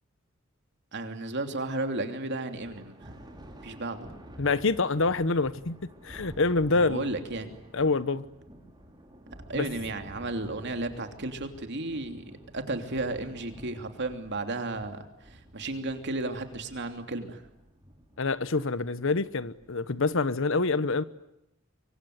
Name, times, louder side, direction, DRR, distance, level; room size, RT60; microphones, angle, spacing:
voice 1, 0.9-3.1 3.6-4.1 6.7-7.5 9.5-12.2 12.5-17.4, right 2 dB, 55° right, 3.1 m, -34 dB
Thunder, 2.6-20.3, equal, 20° right, 5.3 m, -50 dB
voice 2, 4.4-7.1 7.7-8.2 9.5-9.7 18.2-21.0, left 3 dB, 65° left, 1.1 m, -26 dB
25.0 x 24.5 x 9.6 m
head